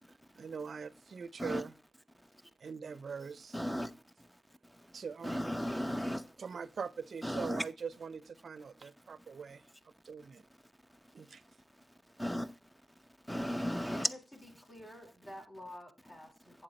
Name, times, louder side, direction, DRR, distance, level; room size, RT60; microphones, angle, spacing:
voice 1, 0.1-1.7 2.6-3.7 4.9-5.5 6.4-9.6 10.0-10.4 11.1-11.4, right 6 dB, 60° right, 0.6 m, -42 dB
voice 2, 3.5-4.0 5.2-6.3 7.2-7.6 12.2-12.5 13.3-14.1, equal, 5° left, 0.8 m, -34 dB
voice 3, 13.9-16.6, left 1 dB, 35° left, 4.5 m, -50 dB
8.4 x 7.6 x 4.2 m
cardioid pair, 55°, 0 cm